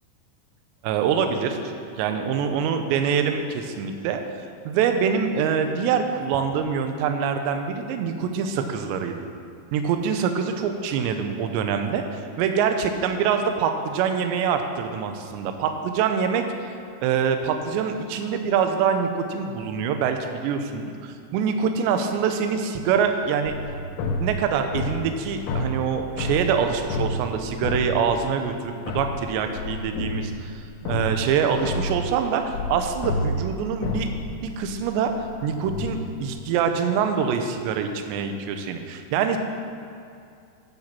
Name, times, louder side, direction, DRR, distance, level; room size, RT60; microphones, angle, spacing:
voice 1, 0.8-1.6 2.0-4.2 4.7-9.2 9.7-16.4 17.0-23.5 24.2-35.1 35.4-39.4, right 7 dB, 80° right, 6 dB, 2.8 m, -25 dB
sound 1, 23.5-28.6 28.9-36.3, left 2 dB, 85° left, 3.3 m, -30 dB
11.5 x 6.3 x 7.4 m, 2.5 s
omnidirectional pair, 5.5 m